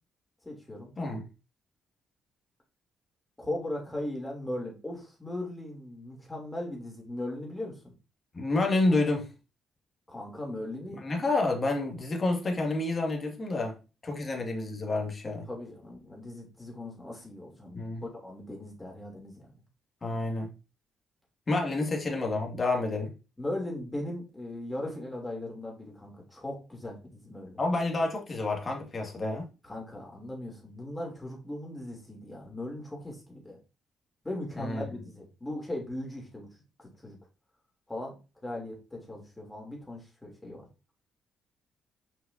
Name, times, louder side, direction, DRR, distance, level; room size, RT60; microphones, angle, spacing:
voice 1, 0.4-0.9 3.4-7.9 10.1-11.0 15.5-19.5 23.4-27.6 29.6-33.6 34.2-36.5 36.8-37.2 37.9-38.2 38.4-40.7, left 1 dB, 15° left, 3.1 m, -38 dB
voice 2, 1.0-1.3 8.3-9.3 11.0-13.7 14.0-15.5 17.7-18.0 20.0-20.5 21.5-23.1 27.6-29.5 34.6-34.8, left 2 dB, 30° left, 2.0 m, -29 dB
6.2 x 5.7 x 2.7 m
cardioid pair, 90°, 0 cm